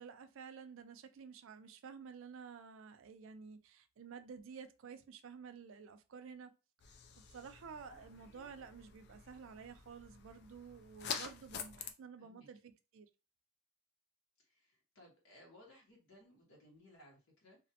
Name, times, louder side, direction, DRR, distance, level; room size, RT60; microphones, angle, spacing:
voice 1, 0.0-6.5 6.9-7.0 7.3-13.1, right 6 dB, 75° right, 0.4 m, -52 dB
sound 1, 6.8-11.9, left 6 dB, 50° left, 0.3 m, -47 dB
voice 2, 12.2-12.5 14.4-17.6, left 1 dB, 85° left, 0.9 m, -61 dB
2.4 x 2.1 x 2.7 m
head